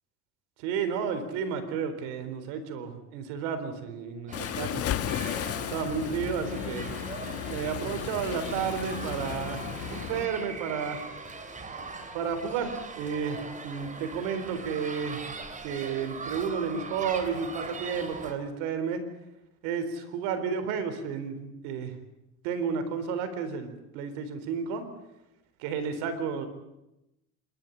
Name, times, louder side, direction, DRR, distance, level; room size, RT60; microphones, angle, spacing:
voice 1, 0.6-4.8 5.7-6.9 7.5-11.0 12.1-15.2 15.6-19.0 19.6-22.0 22.4-24.9 25.6-26.5, right 6 dB, 90° right, 10 dB, 4.0 m, -32 dB
Waves surf, 4.3-10.3, left 11 dB, 50° left, 1.4 m, -36 dB
sound 1, 4.3-18.3, right 4 dB, 25° right, 3.6 m, -41 dB
sound 2, 4.7-10.3, left 7 dB, 90° left, 3.9 m, -39 dB
27.5 x 13.5 x 9.9 m, 0.91 s
cardioid pair, 110°, 30 cm